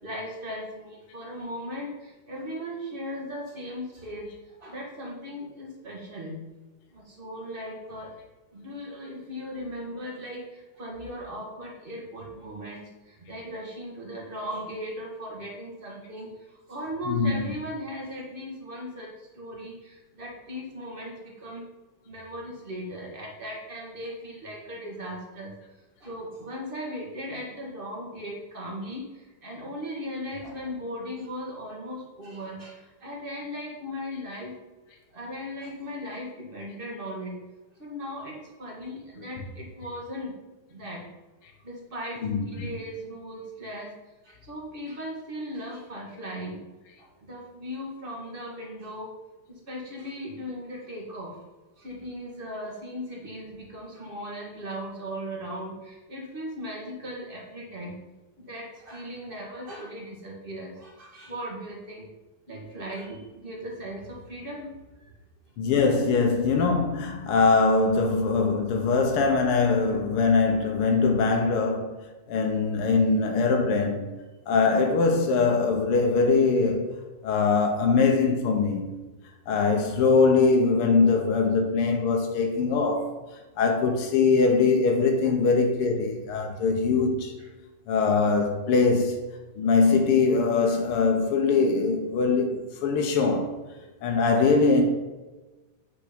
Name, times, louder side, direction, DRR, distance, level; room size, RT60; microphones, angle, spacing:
voice 1, 0.0-6.4 6.9-8.1 8.5-21.6 22.0-25.5 26.0-34.5 35.1-37.4 37.8-40.3 40.7-41.1 41.6-43.9 44.2-46.6 47.0-49.1 49.5-51.4 51.8-58.0 58.4-62.1 62.5-64.7 65.0-65.1 85.2-85.3 86.5-86.6, equal, 30° right, 1.0 m, -38 dB
voice 2, 42.2-42.7 65.6-72.0 72.3-74.1 74.5-76.9 77.2-78.9 79.5-83.1 83.6-87.3 87.9-89.2 89.5-93.6 94.0-94.8, left 4 dB, 70° left, 1.3 m, -22 dB
8.3 x 6.1 x 5.2 m
omnidirectional pair, 3.8 m